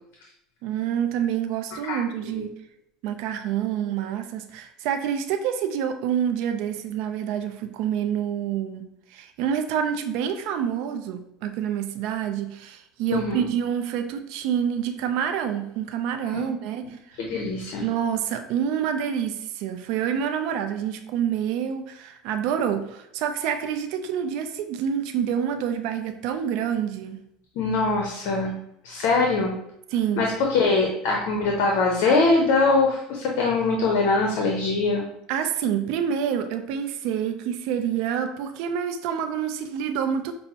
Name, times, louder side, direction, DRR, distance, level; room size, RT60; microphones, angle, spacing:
voice 1, 0.6-2.5 3.0-8.8 9.1-17.2 17.8-27.2 29.9-30.3 35.3-40.3, right 8 dB, 65° right, 7 dB, 0.4 m, -27 dB
voice 2, 1.9-2.5 13.1-13.5 16.3-16.4 17.2-17.8 27.6-28.5 28.8-29.5 30.2-35.0, left 3 dB, 65° left, 1 dB, 0.6 m, -23 dB
5.3 x 2.0 x 2.8 m, 0.77 s
supercardioid pair, 105°, 0 cm